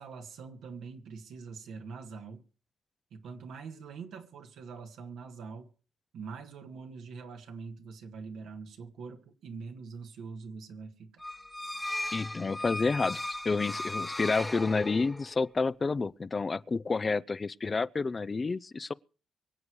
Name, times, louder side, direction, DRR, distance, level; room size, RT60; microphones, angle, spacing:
voice 1, 0.0-2.4 3.1-5.7 6.1-11.3, right 5 dB, 85° right, 2.2 m, -44 dB
sound 1, 11.2-15.3, left 1 dB, 10° left, 1.1 m, -37 dB
voice 2, 12.1-13.2 13.4-18.9, left 4 dB, 40° left, 0.6 m, -29 dB
24.0 x 8.2 x 4.8 m
supercardioid pair, 60°, 0 cm